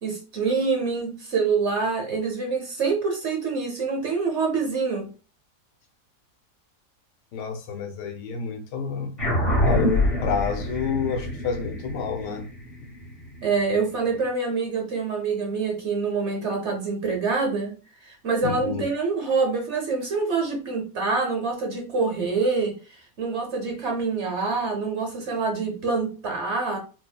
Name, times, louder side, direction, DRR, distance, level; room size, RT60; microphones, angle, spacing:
voice 1, 0.0-5.1 13.4-17.8 18.1-22.8 23.2-26.8, right 4 dB, 50° right, 1.0 m, -26 dB
voice 2, 7.3-9.2 9.6-12.5 18.4-18.8, left 5 dB, 85° left, 1.4 m, -29 dB
sound 1, 9.2-13.9, left 1 dB, 25° left, 1.1 m, -26 dB
4.7 x 2.5 x 2.2 m
omnidirectional pair, 1.8 m